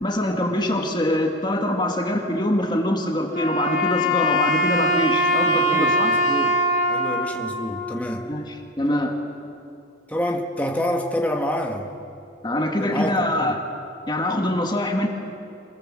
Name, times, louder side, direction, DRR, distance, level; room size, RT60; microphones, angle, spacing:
voice 1, 0.0-6.1 8.3-9.2 12.4-13.6 14.1-15.1, left 1 dB, 25° left, 2 dB, 1.8 m, -24 dB
Wind instrument woodwind instrument, 3.3-8.5, equal, 40° left, 2.3 m, -22 dB
voice 2, 5.5-6.6 6.9-8.3 10.1-11.9 12.8-13.6, equal, 10° left, 1 dB, 1.7 m, -27 dB
26.0 x 18.5 x 7.6 m, 2.6 s
head